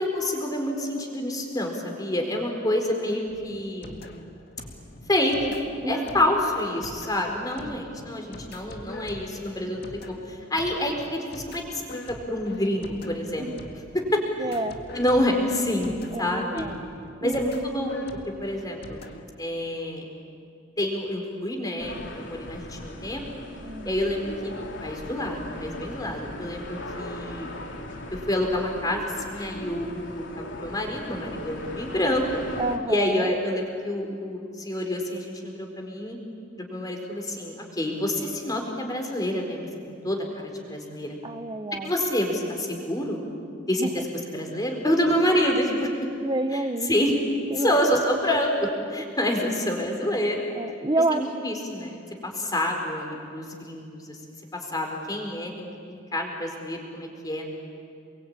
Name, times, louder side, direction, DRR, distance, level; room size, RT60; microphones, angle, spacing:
voice 1, 0.0-4.0 5.1-5.4 5.8-13.5 13.9-14.2 14.9-16.7 17.2-17.9 18.4-19.1 19.4-20.1 20.8-23.2 23.8-24.5 24.8-27.6 28.3-32.2 32.9-36.2 36.6-39.7 40.0-41.2 41.8-43.2 43.7-43.9 44.3-45.9 46.5-46.6 46.9-47.1 47.6-50.4 51.1-54.2 54.7-57.5, left 1 dB, 20° left, 2 dB, 4.5 m, -27 dB
sound 1, 3.3-19.2, left 1 dB, 55° left, 2.0 m, -44 dB
voice 2, 5.8-6.2 7.6-7.8 13.4-13.7 14.4-14.8 16.1-16.8 17.2-17.4 23.6-23.9 32.6-33.3 41.2-41.9 43.8-44.0 46.1-46.9 47.5-47.7 50.5-51.3, right 2 dB, 25° right, 6 dB, 0.8 m, -29 dB
sound 2, 21.8-32.8, left 1 dB, 75° left, 3.1 m, -39 dB
28.5 x 22.5 x 8.9 m, 2.4 s
head